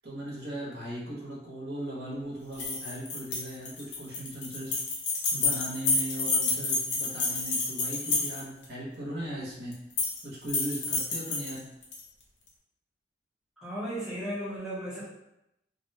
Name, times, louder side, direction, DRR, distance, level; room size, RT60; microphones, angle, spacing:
voice 1, 0.0-4.8 5.3-9.7 10.2-11.7, right 1 dB, 60° right, -5 dB, 0.8 m, -38 dB
sound 1, 2.5-8.6 9.7-10.2 10.5-12.0, left 3 dB, 80° left, 0.6 m, -29 dB
voice 2, 13.6-15.1, equal, 5° right, -7 dB, 0.6 m, -35 dB
2.6 x 2.1 x 2.7 m, 0.87 s
head